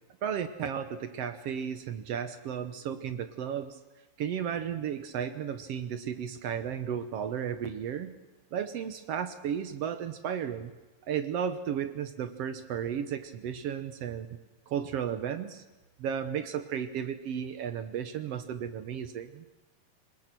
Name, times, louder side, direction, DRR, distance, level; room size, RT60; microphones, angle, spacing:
voice 1, 0.2-3.8 4.2-8.1 8.5-10.7 11.1-14.3 14.7-15.6 16.0-19.4, right 8 dB, 65° right, 10 dB, 1.7 m, -34 dB
26.5 x 20.0 x 6.1 m, 1.1 s
omnidirectional pair, 3.5 m